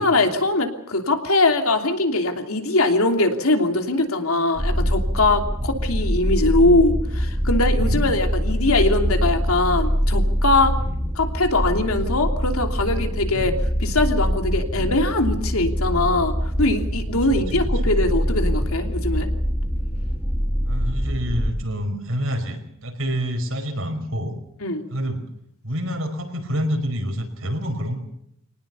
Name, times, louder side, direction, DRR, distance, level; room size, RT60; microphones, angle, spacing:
voice 1, 0.0-10.7 11.1-13.5 13.8-19.3 24.6-24.8, left 2 dB, 85° left, 5 dB, 3.0 m, -21 dB
sound 1, 4.6-21.5, equal, ahead, 2.1 m, -24 dB
voice 2, 17.3-17.6 20.6-24.4 24.9-25.2 25.6-28.0, equal, 70° right, 5 dB, 5.0 m, -28 dB
24.5 x 19.0 x 6.9 m, 0.75 s
head